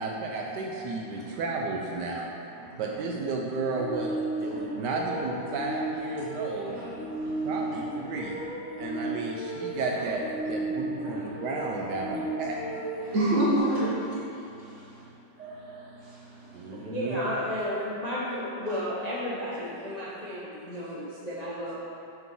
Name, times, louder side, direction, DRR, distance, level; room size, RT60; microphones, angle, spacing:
voice 1, 0.0-2.3 2.8-6.7 7.4-8.4 8.8-12.6 16.5-17.2, right 3 dB, 75° right, -1 dB, 1.2 m, -33 dB
sound 1, 3.8-13.6, right 2 dB, 5° right, 1.2 m, -34 dB
voice 2, 7.0-7.7 8.8-9.0 9.7-9.8 11.0-11.3 12.4-12.6 13.0-15.0 15.4-16.8, right 1 dB, 40° right, -7 dB, 1.7 m, -31 dB
voice 3, 16.7-21.7, left 1 dB, 35° left, -8 dB, 0.6 m, -33 dB
5.9 x 5.4 x 4.5 m, 2.7 s
omnidirectional pair, 2.0 m